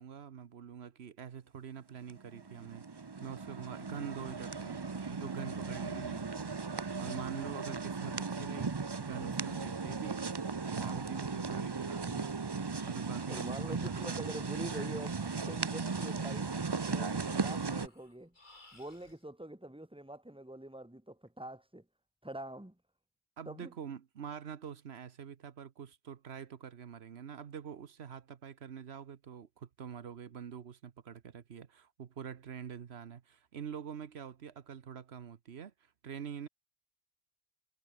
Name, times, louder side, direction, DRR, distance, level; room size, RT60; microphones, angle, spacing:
voice 1, 0.0-4.8 5.1-8.7 9.0-10.2 10.7-12.3 12.8-14.2 23.4-36.5, right 7 dB, 80° right, 1.3 m, -45 dB
sound 1, 2.1-17.9, right 4 dB, 25° right, 0.6 m, -37 dB
voice 2, 13.3-15.2 15.5-16.6 16.9-18.3 18.7-21.9 22.2-22.8 23.5-23.7, right 1 dB, 5° right, 2.1 m, -45 dB
Breathing, 14.9-19.2, left 2 dB, 50° left, 3.6 m, -63 dB
omnidirectional pair, 1.1 m